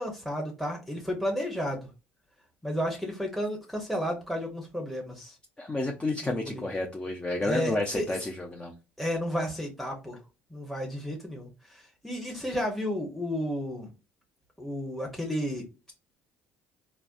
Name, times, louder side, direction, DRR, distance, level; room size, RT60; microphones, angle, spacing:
voice 1, 0.0-1.9 2.6-5.3 6.2-6.6 7.4-8.0 9.0-10.2 10.5-13.9 14.6-15.7, equal, ahead, 1.0 m, -32 dB
voice 2, 5.6-8.7, left 2 dB, 20° left, 0.6 m, -30 dB
3.3 x 2.1 x 2.5 m
hypercardioid pair, 65°, 6 cm